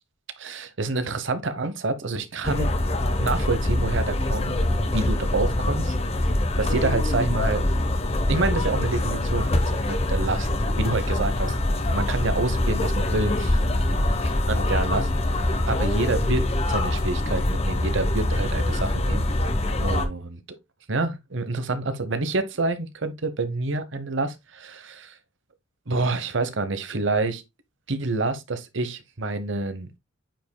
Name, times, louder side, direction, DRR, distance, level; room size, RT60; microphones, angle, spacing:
voice 1, 0.4-2.8 3.2-6.0 6.6-7.7 8.3-10.5 10.8-11.6 11.9-13.6 14.5-15.3 15.7-19.2 19.8-20.4 20.9-25.2 25.9-27.4 27.9-29.9, right 3 dB, 60° right, 0.9 m, -27 dB
sound 1, 2.4-20.1, left 1 dB, 30° left, 0.9 m, -24 dB
9.0 x 5.2 x 2.2 m
head